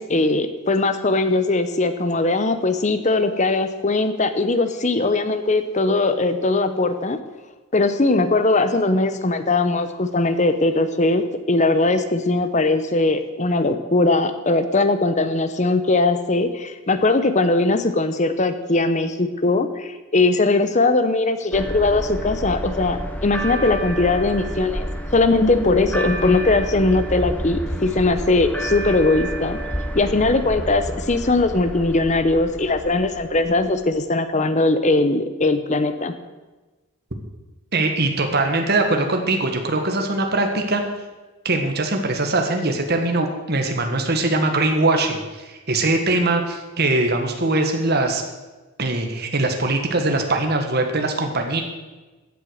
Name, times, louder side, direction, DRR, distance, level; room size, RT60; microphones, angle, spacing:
voice 1, 0.0-7.2 7.7-29.6 29.9-36.1, left 2 dB, 30° left, 10 dB, 0.8 m, -20 dB
sound 1, 21.5-33.9, equal, 5° left, 1.0 m, -30 dB
voice 2, 37.7-40.8 41.4-48.2 48.8-51.6, right 2 dB, 45° right, 4 dB, 1.6 m, -21 dB
15.0 x 8.2 x 6.4 m, 1.2 s
head